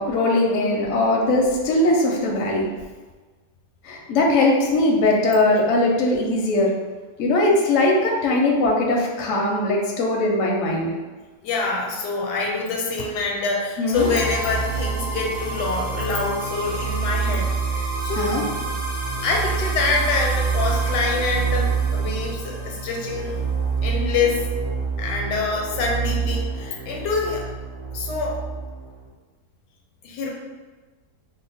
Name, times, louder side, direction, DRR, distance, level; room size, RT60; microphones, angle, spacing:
voice 1, 0.0-2.6 3.8-6.7 7.2-10.9 13.8-14.1 18.2-18.4, left 2 dB, 65° left, -1 dB, 0.8 m, -20 dB
voice 2, 11.4-18.5 19.2-23.4 23.8-24.4 25.0-27.5 27.9-28.4 30.0-30.3, left 4 dB, 80° left, 0 dB, 1.2 m, -26 dB
sound 1, 13.9-29.1, right 5 dB, 50° right, 0.5 m, -26 dB
2.8 x 2.1 x 4.0 m, 1.3 s
omnidirectional pair, 1.8 m